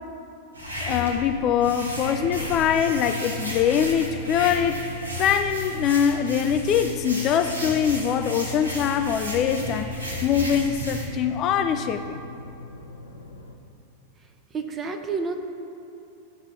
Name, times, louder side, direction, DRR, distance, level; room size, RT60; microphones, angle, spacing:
sound 1, 0.5-11.1, equal, 85° right, 1.2 m, -34 dB
voice 1, 0.8-4.8 5.2-9.9 10.2-12.2, left 8 dB, 35° left, 8 dB, 0.3 m, -23 dB
sound 2, 1.8-13.6, left 1 dB, 80° left, 0.6 m, -38 dB
voice 2, 14.2-15.3, right 4 dB, 20° right, 5 dB, 0.6 m, -31 dB
12.0 x 5.9 x 2.7 m, 2.7 s
figure-of-eight pair, 90°, 0 cm